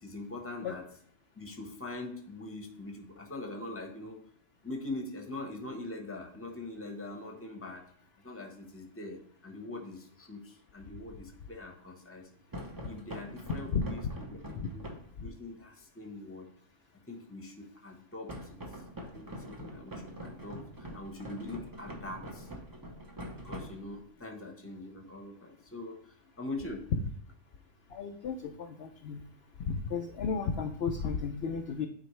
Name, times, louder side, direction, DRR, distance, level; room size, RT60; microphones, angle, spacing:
voice 1, 0.0-0.9 1.3-4.2 4.6-7.8 8.2-12.3 12.8-14.4 14.7-14.9 15.2-16.5 17.1-18.8 19.1-22.5 23.4-26.9, left 2 dB, 10° left, 3 dB, 0.9 m, -43 dB
sound 1, 12.5-15.2 18.3-24.2, equal, 20° right, 0.7 m, -44 dB
voice 2, 27.9-29.2 29.7-31.9, left 5 dB, 60° left, 4 dB, 0.7 m, -33 dB
9.1 x 4.2 x 3.2 m, 0.63 s
omnidirectional pair, 1.4 m